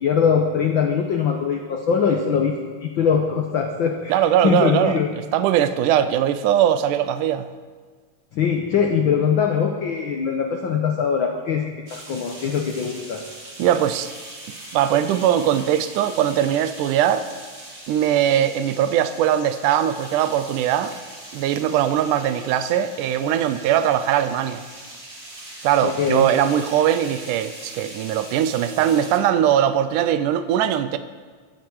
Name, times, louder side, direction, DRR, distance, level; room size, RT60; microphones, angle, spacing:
voice 1, 0.0-5.1 8.3-13.2 25.8-26.3, left 6 dB, 65° left, 3 dB, 1.3 m, -22 dB
voice 2, 4.1-5.0 5.3-7.5 13.6-14.1 14.7-17.3 17.9-20.9 21.3-24.6 25.6-31.0, right 10 dB, 90° right, 11 dB, 2.2 m, -20 dB
sound 1, 11.9-29.2, right 1 dB, 20° right, 2.8 m, -41 dB
23.5 x 12.0 x 4.7 m, 1.5 s
omnidirectional pair, 3.5 m